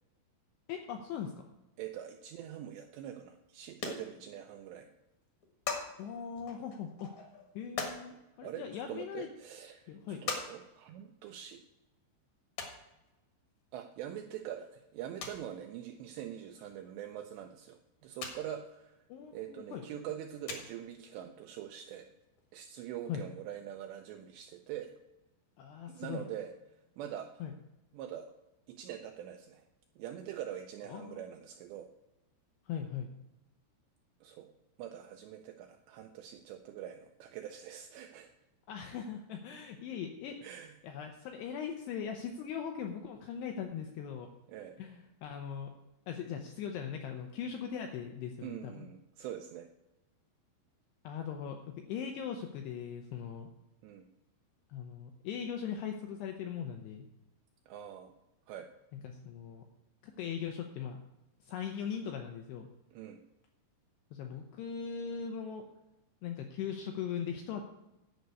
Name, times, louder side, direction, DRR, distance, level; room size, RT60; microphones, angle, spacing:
voice 1, 0.7-1.3 6.0-7.1 7.6-9.3 9.9-10.2 19.1-19.8 23.1-23.2 25.6-26.2 27.4-27.5 30.9-31.2 32.7-33.1 38.7-40.4 40.8-44.3 44.8-45.7 46.1-48.9 51.0-53.5 54.7-57.1 58.9-59.6 60.2-61.0 61.4-62.7 64.1-65.7 66.2-67.7, left 7 dB, 85° left, 4 dB, 2.4 m, -40 dB
voice 2, 1.8-4.9 8.4-11.6 13.7-19.0 19.3-22.1 22.5-24.9 25.9-26.5 27.0-27.3 27.9-28.3 28.7-29.6 30.0-31.9 34.2-34.5 34.8-38.3 40.4-40.7 44.5-44.8 48.4-49.7 53.8-54.1 57.7-58.1 58.5-58.7 62.9-63.2, right 10 dB, 85° right, 5 dB, 2.5 m, -44 dB
sound 1, 3.3-3.4 3.7-4.7 4.9-5.0 5.2-5.9 6.4-8.0 8.8-8.9 9.4-9.5 10.3-10.5 10.8-10.9 12.6-12.8 13.9-14.1 14.4-14.5 14.8-14.9 15.2-15.5 16.9-17.0 17.4-17.5 18.2-18.4 18.7-18.8 20.0-20.1 20.4-20.9 21.8-21.9 22.1-22.2 22.4-22.5, left 5 dB, 65° left, 2.0 m, -39 dB
10.5 x 5.4 x 8.1 m, 0.96 s
omnidirectional pair, 5.6 m